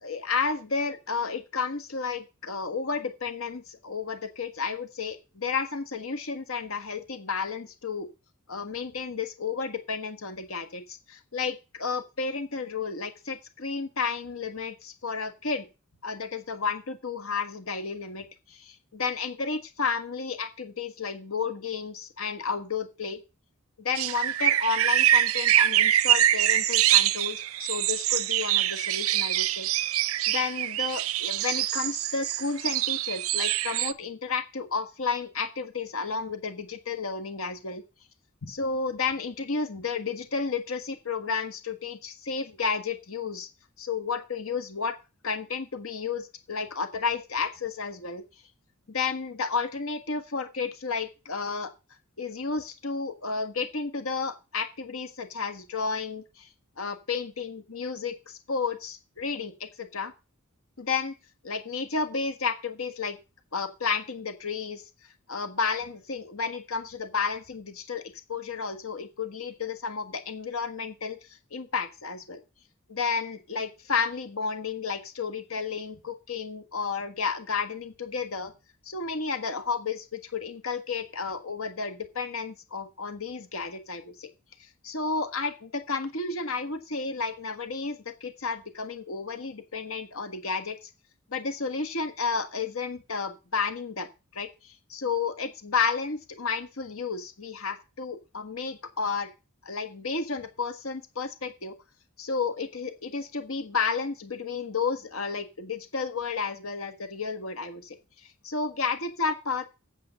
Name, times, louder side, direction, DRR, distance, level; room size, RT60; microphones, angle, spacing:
voice 1, 0.0-8.1 8.5-15.7 16.0-23.2 23.8-29.7 30.3-37.8 38.4-43.5 43.8-45.0 45.2-48.2 48.9-51.7 52.2-56.5 56.8-60.1 60.8-61.1 61.4-63.2 63.5-64.9 65.3-72.4 72.9-78.5 78.8-84.3 84.6-90.9 91.3-94.1 94.3-99.3 99.6-101.7 102.2-108.0 108.4-109.6, left 5 dB, 85° left, 9 dB, 1.5 m, -32 dB
sound 1, 23.9-33.9, right 13 dB, 80° right, 0.5 m, -24 dB
8.6 x 6.6 x 6.8 m, 0.29 s
head